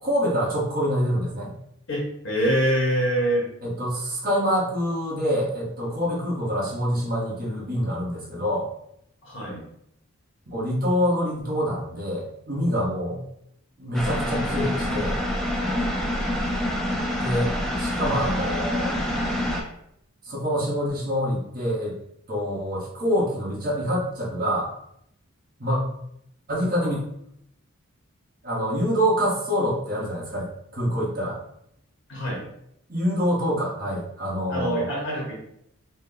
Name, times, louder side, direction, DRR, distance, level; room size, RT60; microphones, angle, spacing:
voice 1, 0.0-1.5 3.6-8.7 10.5-13.2 13.8-15.2 17.1-17.5 17.8-19.0 20.2-21.9 22.3-24.7 25.6-25.8 26.5-26.9 28.4-31.4 32.9-34.9, equal, 40° right, -5 dB, 1.1 m, -26 dB
voice 2, 1.9-3.5 9.2-9.6 15.5-16.0 32.1-32.4 34.5-35.3, equal, 55° left, -2 dB, 1.2 m, -25 dB
sound 1, 13.9-19.6, left 1 dB, ahead, 0.4 m, -26 dB
4.2 x 2.1 x 3.8 m, 0.74 s
head